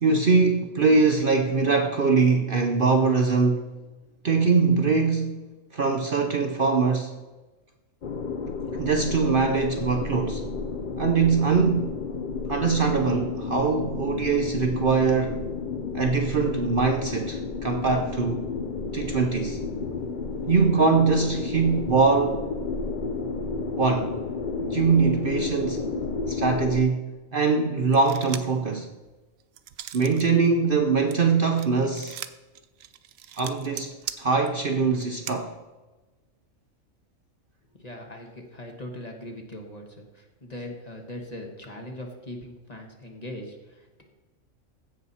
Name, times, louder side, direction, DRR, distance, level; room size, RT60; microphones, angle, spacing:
voice 1, 0.0-3.7 4.2-5.4 5.7-7.1 8.7-10.5 11.0-11.9 12.5-15.4 15.9-18.5 18.9-19.6 20.5-22.4 23.8-24.2 24.6-25.9 26.3-28.9 29.9-32.2 33.4-35.5, right 4 dB, 50° right, 4 dB, 0.8 m, -22 dB
sound 1, 8.0-26.8, left 4 dB, 50° left, 0.6 m, -32 dB
sound 2, 27.9-28.6 29.1-30.3 30.6-35.4, right 11 dB, 75° right, 1.0 m, -39 dB
voice 2, 37.8-44.0, left 1 dB, 30° left, 2 dB, 1.5 m, -40 dB
15.5 x 6.0 x 4.2 m, 1.2 s
omnidirectional pair, 1.4 m